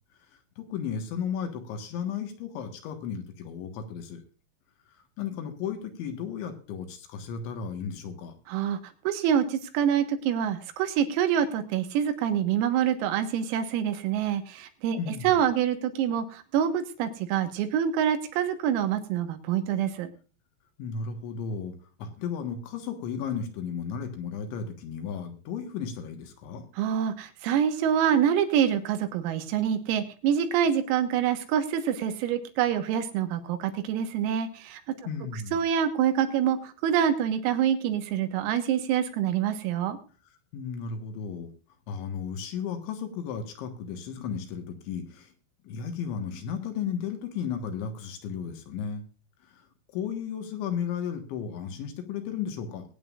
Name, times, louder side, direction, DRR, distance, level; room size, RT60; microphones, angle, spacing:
voice 1, 0.6-4.2 5.2-8.3 15.0-15.5 20.8-26.6 35.1-35.6 40.5-41.5 41.9-45.3 45.7-49.1 49.5-49.6 49.9-52.8, left 7 dB, 70° left, 6 dB, 3.6 m, -34 dB
voice 2, 8.5-8.8 9.1-20.1 26.8-34.8 35.5-40.0, right 9 dB, 85° right, 7 dB, 4.1 m, -26 dB
22.0 x 9.3 x 2.5 m, 0.36 s
omnidirectional pair, 6.0 m